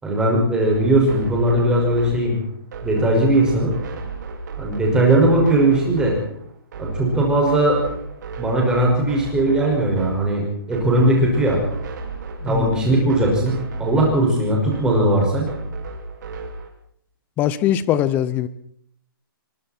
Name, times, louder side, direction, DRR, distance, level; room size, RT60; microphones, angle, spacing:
voice 1, 0.0-2.4 2.8-3.7 4.6-6.2 6.8-7.8 8.4-11.6 12.4-15.5, right 1 dB, 5° right, -1 dB, 5.7 m, -19 dB
sound 1, 0.7-16.7, right 2 dB, 50° right, 4.8 m, -32 dB
voice 2, 12.4-12.9 17.4-18.5, left 11 dB, 15° left, 17 dB, 0.8 m, -21 dB
25.0 x 23.5 x 4.5 m, 0.66 s
hypercardioid pair, 165°, 12 cm